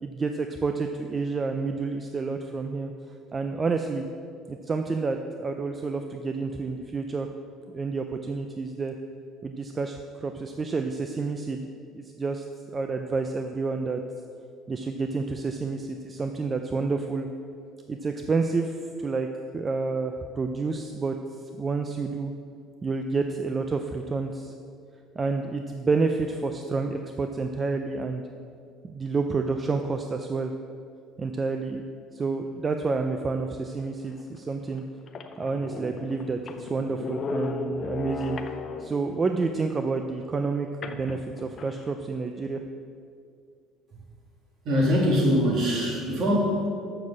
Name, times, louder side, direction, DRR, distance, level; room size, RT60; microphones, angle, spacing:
voice 1, 0.0-2.9 3.3-4.1 4.5-7.3 7.7-8.9 9.4-12.5 12.7-14.0 14.7-17.3 17.9-19.3 19.5-21.2 21.6-22.3 22.8-24.5 25.2-28.2 28.8-30.5 31.2-31.8 32.1-34.8 35.4-38.4 38.8-42.6, right 4 dB, 20° right, 6 dB, 0.4 m, -29 dB
sound 1, 34.1-34.2 34.8-34.9 35.1-39.1 40.8-41.9, left 4 dB, 35° left, 0.5 m, -35 dB
voice 2, 44.6-46.7, equal, 45° right, -1 dB, 2.2 m, -23 dB
6.8 x 6.3 x 7.3 m, 2.3 s
cardioid pair, 155°, 0 cm